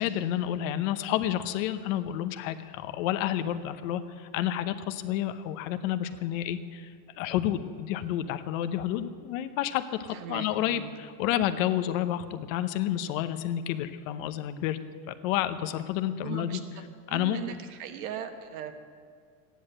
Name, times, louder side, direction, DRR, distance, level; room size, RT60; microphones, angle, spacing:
voice 1, 0.0-14.8 15.1-16.6 17.1-17.4, left 12 dB, 60° left, 11 dB, 0.9 m, -30 dB
voice 2, 10.1-10.9 16.2-18.7, right 9 dB, 70° right, 7 dB, 1.4 m, -39 dB
14.5 x 10.0 x 7.6 m, 2.1 s
supercardioid pair, 155°, 45 cm